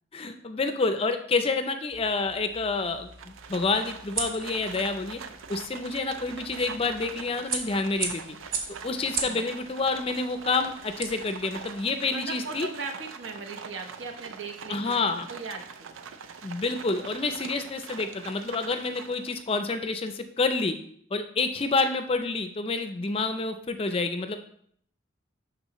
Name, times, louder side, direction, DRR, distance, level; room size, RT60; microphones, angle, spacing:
voice 1, 0.1-5.2 5.5-8.4 8.8-12.7 14.7-15.3 16.4-20.8 21.1-24.4, left 3 dB, 30° left, 8 dB, 0.5 m, -28 dB
sound 1, 1.9-11.8, right 4 dB, 45° right, 1.0 m, -38 dB
Livestock farm animals working animals, 3.1-19.5, right 6 dB, 90° right, 0.5 m, -43 dB
voice 2, 9.0-9.4 12.1-15.9, right 4 dB, 70° right, 3 dB, 0.9 m, -39 dB
11.0 x 3.9 x 3.0 m, 0.64 s
head